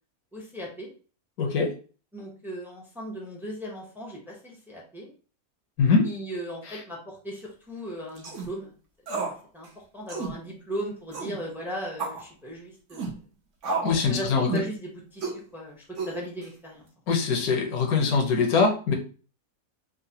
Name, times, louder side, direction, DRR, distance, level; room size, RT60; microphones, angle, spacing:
voice 1, 0.3-0.9 2.1-5.1 6.0-8.7 9.2-9.7 9.9-13.2 14.1-16.9, equal, 5° right, -2 dB, 0.3 m, -37 dB
voice 2, 1.4-1.7 5.8-6.0 6.7-6.8 13.8-14.5 17.1-18.9, left 4 dB, 80° left, 1 dB, 1.2 m, -23 dB
sound 1, 8.2-8.5 9.1-9.4 9.6-9.7 10.1-10.3 11.1-11.4 12.0-12.2 12.9-13.1 13.6-14.0 14.5-14.7 15.2-15.4 16.0-16.4, right 4 dB, 60° right, 1.1 m, -31 dB
3.8 x 2.1 x 2.7 m, 0.38 s
omnidirectional pair, 1.5 m